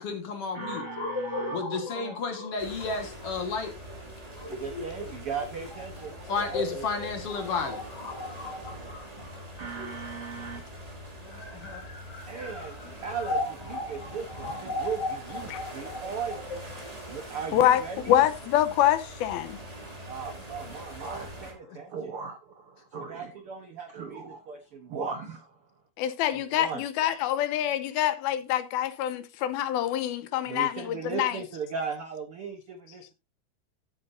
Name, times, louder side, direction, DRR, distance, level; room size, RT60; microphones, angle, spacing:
voice 1, 0.0-0.9 1.5-3.7 6.3-7.8 11.2-11.9 21.7-21.8, left 4 dB, 50° left, 2.1 m, -32 dB
voice 2, 0.5-1.6 1.9-2.2 4.4-6.9 9.6-10.6 12.3-12.7 13.0-16.4 17.1-18.3 20.1-25.6 26.3-26.8 30.5-33.1, right 5 dB, 70° right, 1.3 m, -37 dB
sound 1, 0.6-10.4 11.2-18.1, left 2 dB, 30° left, 2.6 m, -37 dB
sound 2, 2.6-21.5, equal, 10° right, 2.1 m, -43 dB
voice 3, 18.1-19.6 26.0-31.4, left 11 dB, 80° left, 2.7 m, -25 dB
14.5 x 8.7 x 2.7 m
omnidirectional pair, 4.5 m